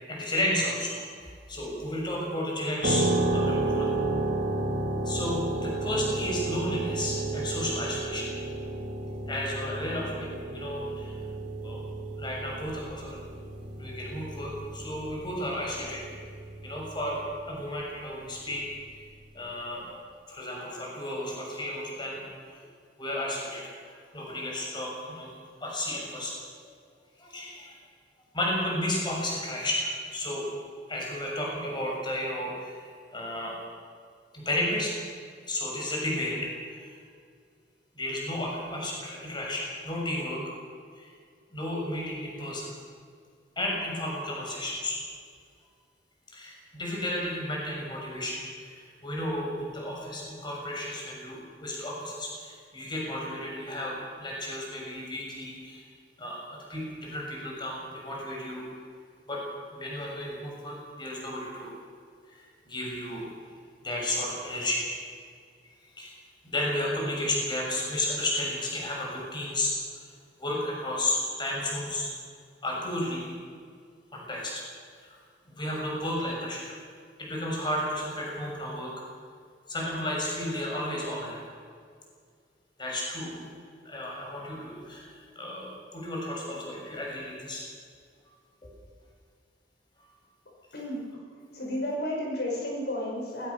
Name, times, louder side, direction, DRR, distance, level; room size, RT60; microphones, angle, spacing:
voice 1, 0.1-3.1 3.3-3.9 5.0-8.3 9.3-11.1 11.6-11.8 12.2-13.2 13.8-16.0 16.6-18.6 19.3-20.0 20.3-22.6 23.0-23.7 24.1-25.3 25.6-26.3 27.2-27.8 28.3-30.5 30.9-33.5 34.3-34.9 35.5-36.4 36.7-36.8 37.9-40.4 41.0-41.1 41.5-42.7 43.6-45.0 46.3-55.9 56.2-58.7 59.3-59.4 59.7-61.7 62.2-63.3 63.8-64.9 66.0-66.1 66.4-69.7 70.4-72.1 72.6-73.3 74.1-74.7 75.0-75.2 75.5-76.7 77.2-78.9 79.7-81.4 82.8-83.5 83.8-87.6 88.6-88.7, left 1 dB, 25° left, -2 dB, 6.6 m, -33 dB
sound 1, 2.8-17.5, right 2 dB, 90° right, 3.7 m, -32 dB
voice 2, 91.5-93.5, left 1 dB, 65° left, -2 dB, 5.9 m, -32 dB
20.5 x 20.0 x 6.9 m, 2.1 s
head